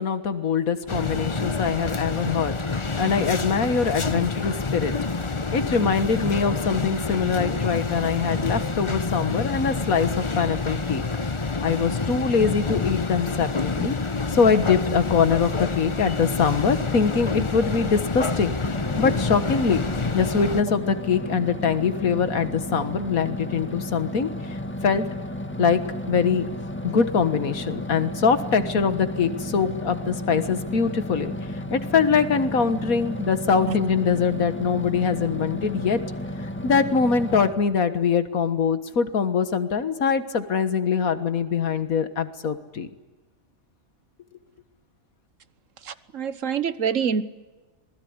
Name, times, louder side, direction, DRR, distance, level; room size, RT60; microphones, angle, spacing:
voice 1, 0.0-4.9 5.5-11.0 11.6-14.0 14.3-18.5 19.0-19.8 20.1-24.6 24.8-25.1 25.6-25.8 26.1-26.5 26.8-31.3 31.7-36.0 36.6-42.9, left 6 dB, 85° left, 11 dB, 2.0 m, -23 dB
sound 1, 0.9-20.6, left 4 dB, 25° left, 0.9 m, -28 dB
sound 2, 18.6-37.5, left 1 dB, 10° left, 1.4 m, -33 dB
voice 2, 45.8-47.2, right 7 dB, 65° right, 14 dB, 1.5 m, -26 dB
26.5 x 20.0 x 9.7 m, 1.2 s
omnidirectional pair, 1.4 m